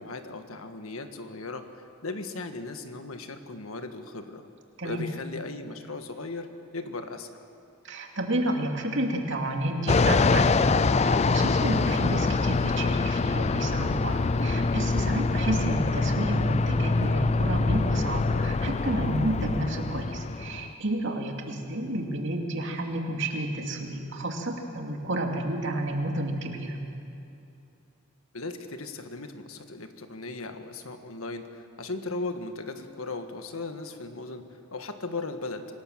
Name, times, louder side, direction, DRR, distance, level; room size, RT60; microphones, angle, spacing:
voice 1, 0.0-4.4 4.8-7.5 28.3-35.6, left 3 dB, 75° left, 7 dB, 1.6 m, -37 dB
voice 2, 7.8-26.8, right 1 dB, 60° right, 2 dB, 2.7 m, -30 dB
Fixed-wing aircraft airplane, 9.9-20.7, left 3 dB, 30° left, 0.4 m, -25 dB
26.0 x 18.5 x 7.5 m, 2.7 s
head